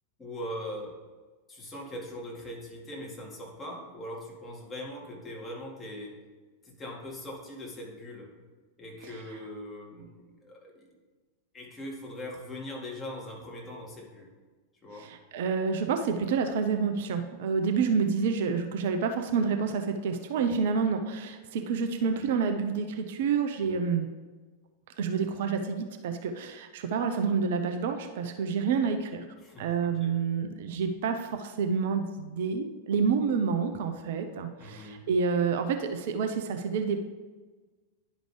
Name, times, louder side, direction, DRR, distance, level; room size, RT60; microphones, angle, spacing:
voice 1, 0.2-1.0 1.5-6.2 6.6-8.3 8.8-10.9 11.5-14.3 14.8-15.1 23.6-23.7 29.4-30.1 34.6-35.0, left 1 dB, 20° left, -2 dB, 2.0 m, -41 dB
voice 2, 9.0-9.4 14.9-24.1 25.0-29.2 29.6-37.0, right 5 dB, 55° right, 6 dB, 0.5 m, -28 dB
10.5 x 5.1 x 3.2 m, 1.3 s
figure-of-eight pair, 90°, 0 cm